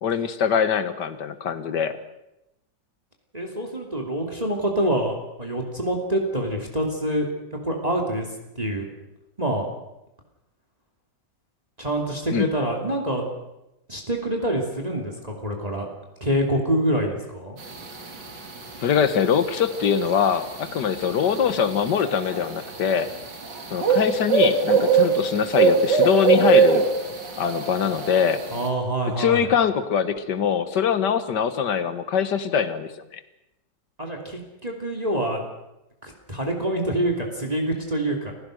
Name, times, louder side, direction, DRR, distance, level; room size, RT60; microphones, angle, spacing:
voice 1, 0.0-2.0 12.3-12.5 18.8-23.1 23.7-26.8 27.4-28.4 29.2-33.2, left 7 dB, 75° left, 12 dB, 1.9 m, -23 dB
voice 2, 3.3-7.3 7.6-8.3 8.6-8.9 9.4-9.7 11.8-13.3 13.9-15.9 16.2-17.6 28.5-29.5 34.0-35.4 36.0-38.3, right 1 dB, 20° right, 2 dB, 2.9 m, -26 dB
sound 1, 17.6-28.7, right 5 dB, 85° right, 3.4 m, -23 dB
28.5 x 16.0 x 6.4 m, 0.92 s
omnidirectional pair, 1.9 m